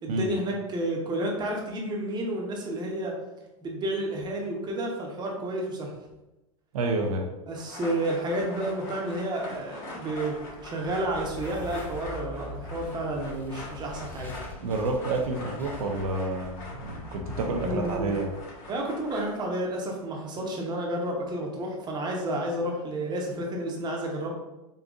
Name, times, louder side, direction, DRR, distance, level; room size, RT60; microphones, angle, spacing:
voice 1, 0.0-3.1 3.6-5.9 7.5-10.4 10.6-14.3 17.5-18.1 18.7-24.3, right 1 dB, 25° right, 0 dB, 0.8 m, -31 dB
voice 2, 6.7-7.3 14.5-18.3, right 2 dB, 75° right, 2 dB, 0.5 m, -29 dB
sound 1, 7.5-19.2, left 2 dB, 55° left, 1.4 m, -43 dB
sound 2, 10.5-19.3, left 1 dB, 10° left, 0.4 m, -43 dB
3.8 x 2.6 x 2.4 m, 0.98 s
hypercardioid pair, 110°, 19 cm